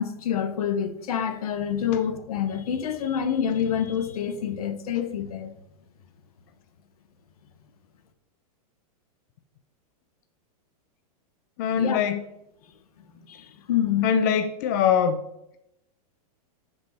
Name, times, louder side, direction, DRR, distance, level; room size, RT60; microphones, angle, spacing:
voice 1, 0.0-5.5 11.8-12.0 13.1-14.1, left 8 dB, 70° left, 1.1 m, -27 dB
voice 2, 11.6-12.2 14.0-15.2, left 7 dB, 30° left, 0.4 m, -22 dB
12.0 x 5.4 x 4.3 m
supercardioid pair, 180°, 19 cm